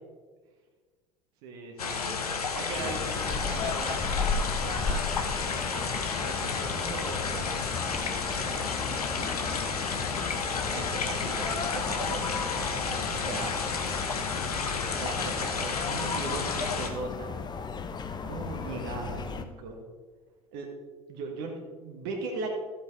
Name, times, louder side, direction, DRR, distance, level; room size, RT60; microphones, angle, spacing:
voice 1, 1.4-2.2 2.5-4.2 4.6-5.0 5.4-9.5 9.9-10.2 10.7-13.5 14.9-17.4 18.2-19.8 20.5-20.7 21.1-22.5, right 3 dB, 50° right, 1 dB, 1.6 m, -39 dB
sound 1, 1.8-16.9, left 5 dB, 80° left, 1.0 m, -32 dB
sound 2, 2.7-19.4, left 5 dB, 20° left, 0.7 m, -35 dB
14.0 x 8.1 x 3.3 m, 1.4 s
figure-of-eight pair, 70°, 19 cm